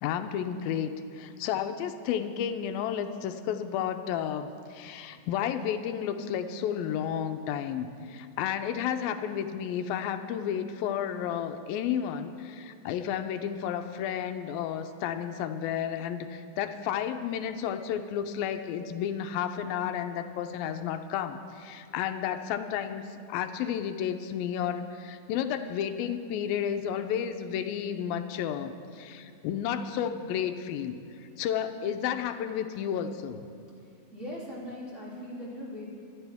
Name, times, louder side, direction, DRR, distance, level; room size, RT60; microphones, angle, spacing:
voice 1, 0.0-23.0 23.3-31.0 31.4-33.5, left 9 dB, 85° left, 8 dB, 2.5 m, -32 dB
voice 2, 34.1-35.9, left 1 dB, 20° right, -7 dB, 2.9 m, -39 dB
25.0 x 12.0 x 3.5 m, 2.4 s
omnidirectional pair, 4.1 m